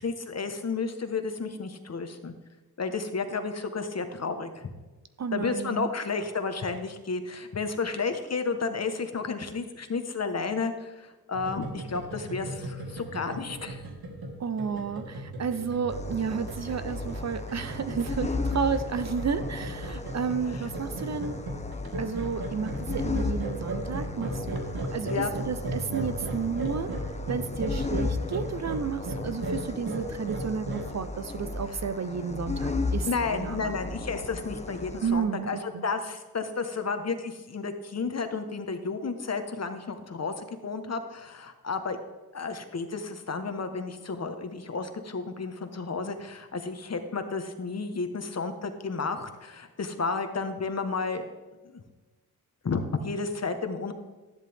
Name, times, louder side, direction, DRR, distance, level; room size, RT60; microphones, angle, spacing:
voice 1, 0.0-2.3 2.8-4.7 5.3-13.8 19.9-20.0 25.1-25.3 33.1-42.0 42.3-51.3 51.6-51.8 52.6-53.9, left 4 dB, 40° left, 7 dB, 1.4 m, -32 dB
voice 2, 5.2-5.9 14.4-21.4 22.0-24.5 24.9-26.9 27.3-33.1 33.4-33.7 35.0-35.9, right 6 dB, 45° right, 11 dB, 0.8 m, -32 dB
sound 1, 11.3-30.8, right 1 dB, 70° right, 2.1 m, -36 dB
sound 2, 15.9-35.1, left 3 dB, 20° left, 0.9 m, -35 dB
13.0 x 10.5 x 3.6 m, 1.2 s
cardioid pair, 75°, 38 cm